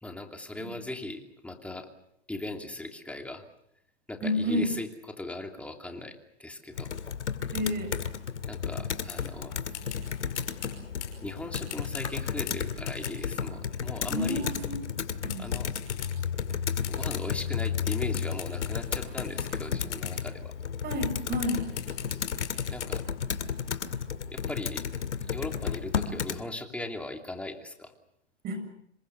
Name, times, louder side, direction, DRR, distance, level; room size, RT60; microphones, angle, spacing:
voice 1, 0.0-1.9 2.3-3.4 4.1-6.9 8.5-9.6 11.2-14.5 15.4-15.7 16.9-20.5 22.7-23.0 24.3-24.9 25.2-27.9, left 2 dB, 5° left, 4 dB, 2.8 m, -38 dB
voice 2, 4.2-4.7 7.5-8.0 14.1-14.8 15.2-15.4 20.8-21.7 28.4-28.7, left 1 dB, 25° right, 7 dB, 7.4 m, -30 dB
Computer keyboard, 6.7-26.4, left 7 dB, 90° left, 2.2 m, -33 dB
sound 1, 9.1-9.3 9.7-13.5 14.0-14.7 15.3-16.5 16.8-17.5 17.9-20.3 20.9-21.1 21.5-22.9, left 12 dB, 40° left, 5.8 m, -43 dB
27.5 x 23.5 x 6.9 m, 0.76 s
hypercardioid pair, 135°, 35 cm